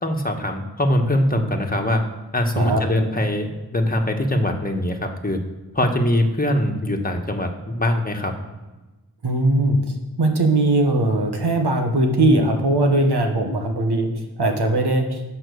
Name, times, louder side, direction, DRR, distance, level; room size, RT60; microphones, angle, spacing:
voice 1, 0.0-2.0 2.3-5.4 5.7-8.3, left 1 dB, 20° left, 3 dB, 1.4 m, -22 dB
voice 2, 9.2-14.1 14.4-15.2, right 2 dB, 85° right, 4 dB, 1.3 m, -19 dB
8.9 x 5.8 x 6.4 m, 1.1 s
wide cardioid pair, 50°, 39 cm